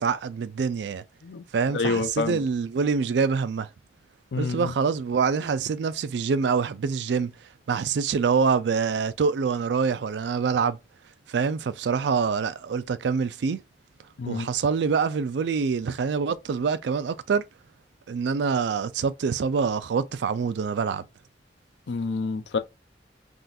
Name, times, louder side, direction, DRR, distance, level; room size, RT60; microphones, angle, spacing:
voice 1, 0.0-1.0 1.5-3.7 4.4-7.3 7.7-10.8 11.3-13.6 14.3-17.4 18.1-21.0, right 5 dB, 70° right, 0.4 m, -25 dB
voice 2, 1.7-2.4 4.3-4.7 14.2-14.5 21.9-22.6, left 4 dB, 75° left, 0.5 m, -28 dB
3.6 x 2.4 x 2.5 m
head